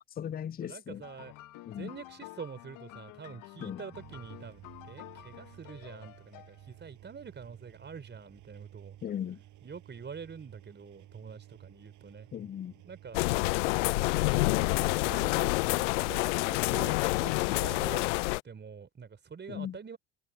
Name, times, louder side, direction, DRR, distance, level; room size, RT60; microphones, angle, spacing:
voice 1, 0.0-1.0 1.7-1.9 3.6-3.8 9.0-9.4 12.3-12.7 19.5-19.8, left 9 dB, 25° left, 0.6 m, -37 dB
voice 2, 0.6-1.3 1.8-9.0 9.6-12.3 12.8-13.3 14.8-20.0, right 6 dB, 30° right, 5.2 m, -46 dB
sound 1, 1.0-6.8, left 17 dB, 60° left, 1.8 m, -50 dB
Engine, 3.9-13.3, right 14 dB, 55° right, 7.4 m, -54 dB
sound 2, 13.1-18.4, left 23 dB, 75° left, 0.7 m, -28 dB
hypercardioid pair, 80°, 36 cm